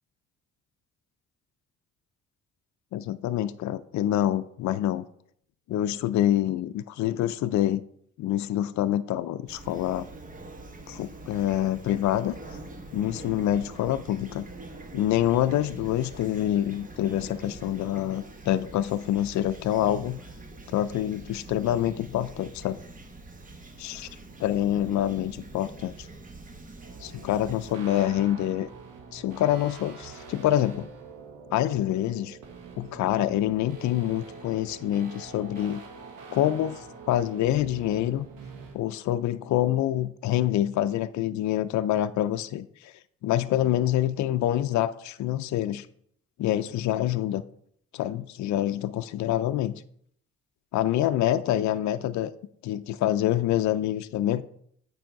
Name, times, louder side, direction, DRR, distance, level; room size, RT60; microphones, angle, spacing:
voice 1, 2.9-5.1 5.7-7.8 8.2-10.1 10.9-12.3 12.9-14.5 14.9-20.2 20.7-22.8 23.8-24.1 24.4-25.9 27.0-28.7 29.1-30.9 31.5-32.4 32.8-35.8 36.3-38.3 38.7-42.9 43.2-45.9 46.4-47.4 47.9-49.7 50.7-52.3 52.6-54.4, left 12 dB, 70° left, 0.5 m, -26 dB
Fowl / Chirp tweet, 9.5-27.8, right 2 dB, 25° right, 1.0 m, -44 dB
sound 1, 26.8-38.8, right 5 dB, 85° right, 1.4 m, -45 dB
7.6 x 4.8 x 4.6 m
cardioid pair, 90°, 30 cm